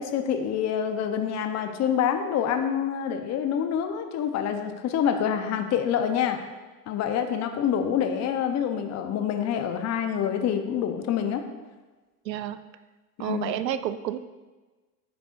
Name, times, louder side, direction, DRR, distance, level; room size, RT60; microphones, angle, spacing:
voice 1, 0.0-6.4 6.9-11.4 13.2-13.5, left 8 dB, 35° left, 6 dB, 0.8 m, -26 dB
voice 2, 12.3-12.6 13.2-14.2, right 11 dB, 85° right, 13 dB, 0.6 m, -30 dB
9.8 x 7.0 x 2.6 m, 1.2 s
hypercardioid pair, 85°, 49 cm